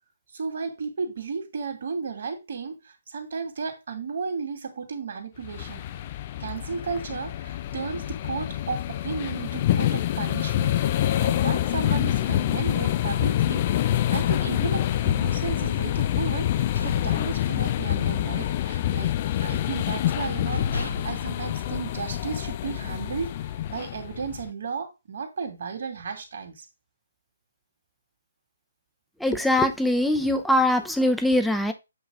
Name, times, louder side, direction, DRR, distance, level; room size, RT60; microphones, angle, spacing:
voice 1, 0.3-5.8 6.4-10.8 11.2-19.1 19.4-23.3 23.7-26.6, right 5 dB, 60° right, 5 dB, 2.4 m, -34 dB
sound 1, 5.4-24.5, left 12 dB, 35° left, 0.5 m, -26 dB
sound 2, 16.7-18.0 18.3-18.6 18.9-19.7 20.1-20.2 20.5-22.3, left 2 dB, 85° left, 4.4 m, -35 dB
voice 2, 29.2-31.7, left 1 dB, ahead, 7 dB, 0.8 m, -22 dB
8.2 x 3.1 x 5.5 m, 0.24 s
figure-of-eight pair, 140°, 0 cm